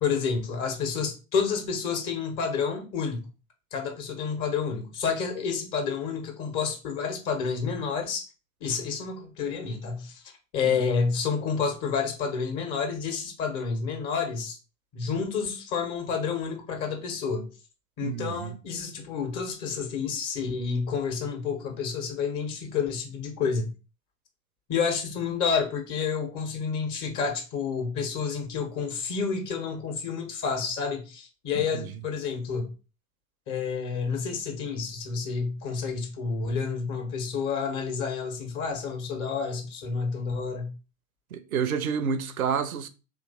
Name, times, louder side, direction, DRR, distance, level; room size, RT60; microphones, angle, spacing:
voice 1, 0.0-3.2 3.7-8.2 8.6-10.2 10.5-14.6 14.9-17.5 18.0-23.7 24.7-32.7 33.5-40.7, left 5 dB, 45° left, 1.5 m, -29 dB
voice 2, 18.0-18.6 31.5-31.9 41.3-42.9, right 6 dB, 85° right, 0.6 m, -29 dB
3.1 x 3.0 x 4.1 m
hypercardioid pair, 85°, 41 cm